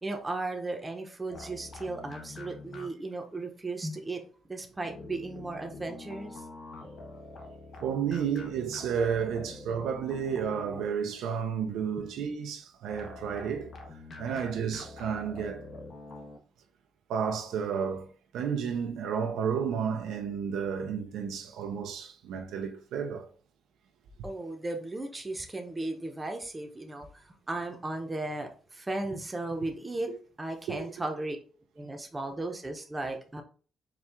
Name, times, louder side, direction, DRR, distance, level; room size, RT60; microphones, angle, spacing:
voice 1, 0.0-6.4 12.0-12.1 14.1-14.5 24.2-30.1 30.4-31.4 31.7-33.4, right 2 dB, 20° right, 0.8 m, -36 dB
sound 1, 1.3-3.2 4.8-11.2 12.9-16.4, left 2 dB, 55° left, 0.9 m, -45 dB
voice 2, 7.8-13.7 14.2-15.7 17.1-23.3 30.7-30.9, right 7 dB, 85° right, 0.5 m, -32 dB
4.4 x 2.4 x 3.6 m
cardioid pair, 90°, 0 cm